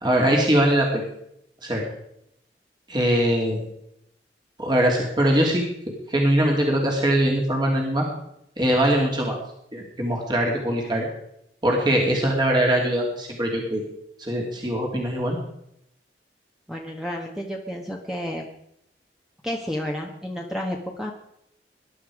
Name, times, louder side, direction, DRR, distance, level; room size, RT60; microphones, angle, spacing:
voice 1, 0.0-1.0 1.6-1.8 2.9-3.6 4.6-5.6 6.1-8.0 8.6-9.4 9.7-11.1 11.6-13.8 14.2-15.4, right 1 dB, 25° right, -1 dB, 2.8 m, -22 dB
voice 2, 16.7-18.5 19.4-21.1, equal, 5° right, 0 dB, 1.4 m, -31 dB
20.0 x 11.5 x 4.9 m, 0.76 s
head